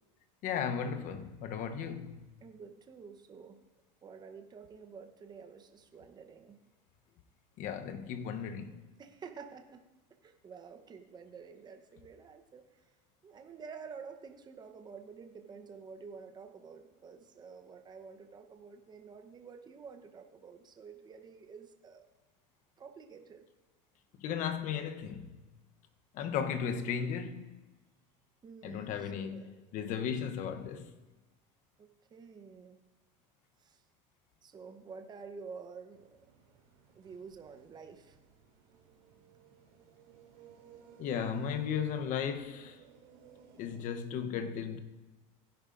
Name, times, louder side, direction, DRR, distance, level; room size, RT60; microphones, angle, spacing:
voice 1, 0.4-2.2 7.6-8.8 24.2-25.4 26.1-27.6 28.6-30.9 41.0-42.8 43.6-44.8, left 7 dB, 50° left, 0.9 m, -35 dB
voice 2, 2.4-3.6 4.0-6.6 9.0-9.8 10.2-12.6 13.2-22.0 22.8-23.4 28.4-29.7 31.8-32.8 33.6-33.8 34.4-36.1 36.9-38.2, right 5 dB, 25° right, 0.9 m, -50 dB
sound 1, 35.9-43.8, right 7 dB, 85° right, 2.7 m, -59 dB
16.5 x 10.5 x 2.6 m
supercardioid pair, 120°, 16 cm